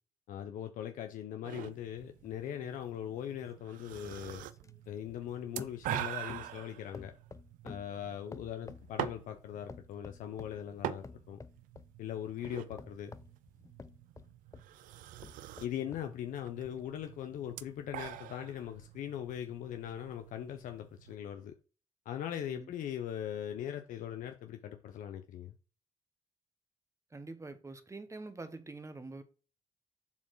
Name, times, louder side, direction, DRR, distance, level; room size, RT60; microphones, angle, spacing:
voice 1, 0.3-4.5 4.9-7.1 7.6-11.4 12.0-13.1 15.6-21.5 22.1-25.5, left 10 dB, 80° left, 0.6 m, -40 dB
sound 1, 1.4-21.2, right 12 dB, 90° right, 0.4 m, -45 dB
sound 2, 2.0-5.3 5.6-6.6 6.9-9.3 9.7-10.6 11.0-11.9 12.4-14.7 15.2-16.1 16.7-16.8, left 4 dB, 25° left, 0.5 m, -51 dB
voice 2, 27.1-29.2, right 3 dB, 20° right, 1.1 m, -45 dB
7.1 x 4.3 x 4.6 m
cardioid pair, 70°, 13 cm